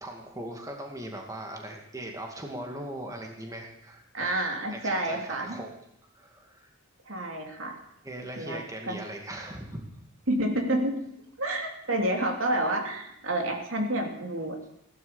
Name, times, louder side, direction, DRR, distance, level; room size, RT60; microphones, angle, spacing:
voice 1, 0.0-4.0 4.7-5.7 6.1-6.7 8.0-9.9, right 1 dB, 15° right, 1 dB, 2.3 m, -39 dB
voice 2, 4.1-5.6 7.1-7.8 8.4-9.0 10.3-10.9 11.4-14.6, right 1 dB, 70° right, 3 dB, 3.1 m, -29 dB
17.0 x 12.0 x 7.1 m, 0.76 s
head